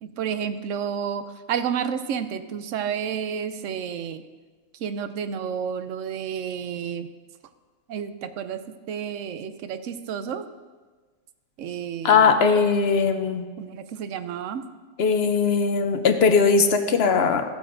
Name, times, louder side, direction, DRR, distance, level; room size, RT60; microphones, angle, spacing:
voice 1, 0.0-4.2 4.7-7.1 7.9-10.5 11.6-12.6 13.6-14.6 17.0-17.1, right 7 dB, 85° right, 11 dB, 0.9 m, -31 dB
voice 2, 12.0-13.4 15.0-17.4, left 5 dB, 60° left, 7 dB, 0.8 m, -19 dB
14.5 x 8.4 x 2.6 m, 1.4 s
omnidirectional pair, 1.3 m